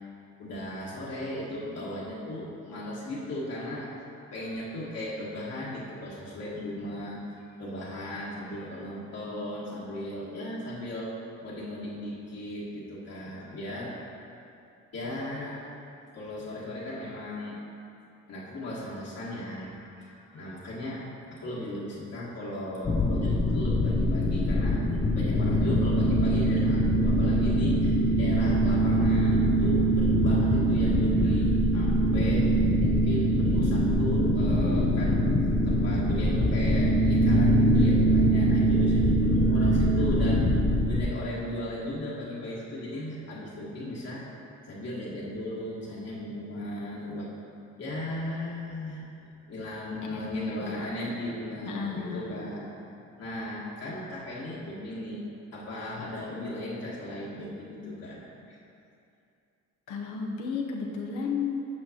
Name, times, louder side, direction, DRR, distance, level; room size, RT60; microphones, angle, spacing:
voice 1, 0.4-3.9 4.2-11.1 11.4-14.3 14.9-15.6 16.1-17.6 18.3-24.8 25.1-32.5 32.8-35.2 35.6-40.6 40.9-44.3 44.6-47.3 47.8-52.7 53.2-55.2 55.5-58.6, left 1 dB, 55° left, -7 dB, 1.5 m, -36 dB
sound 1, 22.8-41.0, equal, 20° left, 0.5 m, -23 dB
voice 2, 51.7-52.5 59.9-61.7, left 5 dB, 85° left, -1 dB, 0.9 m, -33 dB
8.6 x 6.3 x 2.9 m, 2.6 s
cardioid pair, 90°, 30 cm